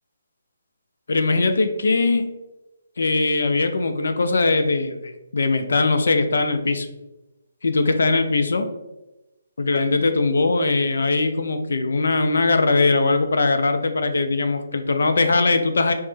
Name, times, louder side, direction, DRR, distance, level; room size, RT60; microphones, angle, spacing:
voice 1, 1.1-2.3 3.0-6.9 7.6-8.7 9.6-15.9, left 3 dB, 70° left, 7 dB, 0.4 m, -20 dB
3.1 x 2.0 x 3.2 m, 1.0 s
hypercardioid pair, 155°, 0 cm